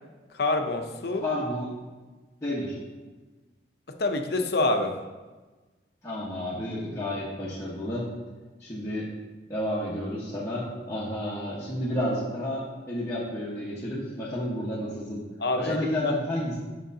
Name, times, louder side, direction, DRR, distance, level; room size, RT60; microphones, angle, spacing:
voice 1, 0.3-1.2 3.9-5.0 15.4-16.1, left 2 dB, 65° left, 5 dB, 0.7 m, -27 dB
voice 2, 1.2-1.7 2.4-2.7 6.0-8.1 8.6-9.1 9.5-15.2 15.6-16.6, left 1 dB, 15° left, -10 dB, 1.2 m, -31 dB
10.0 x 6.3 x 2.8 m, 1.3 s
head